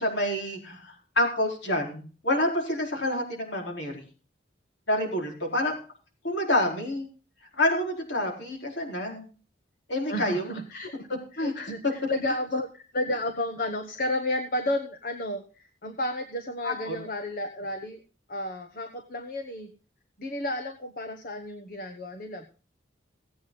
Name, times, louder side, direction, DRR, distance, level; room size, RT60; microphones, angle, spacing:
voice 1, 0.0-4.0 4.9-5.8 6.2-7.1 7.6-9.3 9.9-10.6 11.4-11.5 16.6-16.9, left 1 dB, 65° left, 1 dB, 4.5 m, -28 dB
voice 2, 10.1-18.0 18.3-19.7 20.2-22.5, left 1 dB, 50° left, 6 dB, 1.3 m, -32 dB
17.5 x 8.6 x 3.9 m, 0.36 s
head